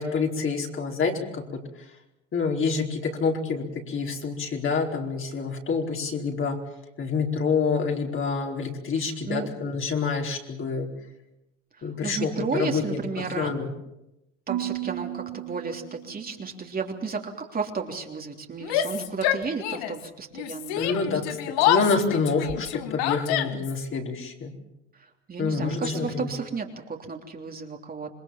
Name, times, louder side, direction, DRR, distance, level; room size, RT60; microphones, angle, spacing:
voice 1, 0.0-1.6 2.3-6.6 7.0-10.9 11.8-13.7 20.8-24.5 25.4-26.3, left 4 dB, 35° left, 1 dB, 4.6 m, -27 dB
voice 2, 9.0-9.5 11.8-13.5 14.5-21.2 24.9-28.1, right 5 dB, 25° right, 2 dB, 3.3 m, -33 dB
Marimba xylophone / Wood, 14.5-16.7, right 15 dB, 60° right, 2.2 m, -34 dB
Yell, 18.6-20.1 20.3-23.8, left 11 dB, 70° left, 1.8 m, -27 dB
27.0 x 21.0 x 7.3 m, 0.91 s
hypercardioid pair, 95°, 36 cm